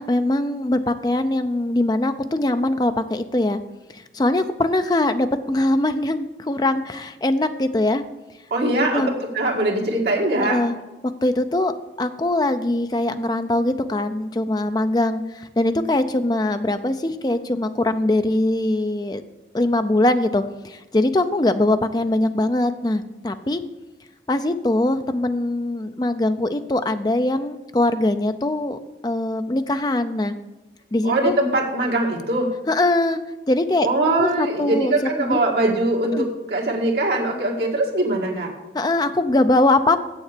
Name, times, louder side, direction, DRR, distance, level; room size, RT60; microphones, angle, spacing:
voice 1, 0.0-3.6 3.9-8.0 8.9-9.2 10.4-10.8 11.2-11.7 12.0-19.2 19.5-23.6 24.3-30.4 30.9-31.3 32.7-33.2 33.5-33.9 34.2-35.4 36.1-36.3 38.7-40.0, left 1 dB, 20° left, 9 dB, 0.4 m, -22 dB
voice 2, 8.5-10.6 31.0-32.5 33.8-38.5, right 2 dB, 70° right, -2 dB, 2.0 m, -22 dB
7.7 x 7.1 x 6.7 m, 1.1 s
head